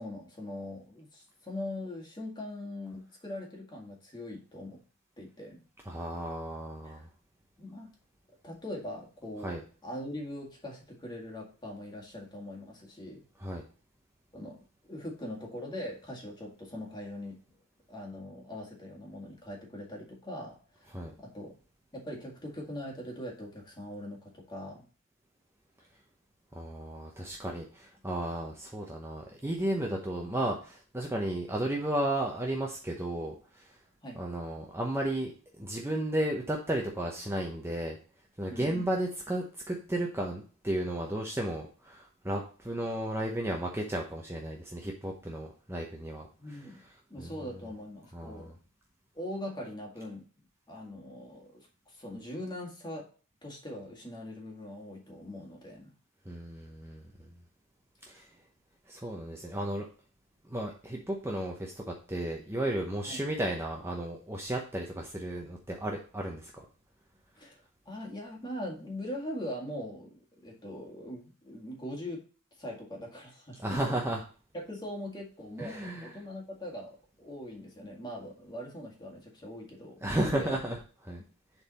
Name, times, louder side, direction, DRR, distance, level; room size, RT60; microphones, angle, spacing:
voice 1, 0.0-4.8 5.2-5.6 6.8-7.0 7.6-7.9 8.4-9.5 9.8-13.2 14.3-14.6 14.9-17.4 17.9-20.6 21.2-21.5 21.9-24.8 34.0-34.2 38.5-38.9 46.4-46.8 47.1-48.5 49.1-50.2 50.7-53.1 53.4-55.9 63.1-63.2 67.4-67.6 67.9-72.2 72.6-73.9 74.5-80.6, left 1 dB, 20° left, -1 dB, 1.9 m, -41 dB
voice 2, 5.9-7.1 9.4-9.6 13.4-13.6 20.9-21.1 26.5-33.7 34.2-38.0 38.4-46.6 47.2-47.3 48.1-48.5 56.3-57.0 58.1-58.3 58.9-59.9 60.5-66.6 73.6-74.2 75.6-76.2 80.0-80.8 81.1-81.2, right 1 dB, 10° right, 0 dB, 0.8 m, -34 dB
7.0 x 4.0 x 4.1 m, 0.39 s
head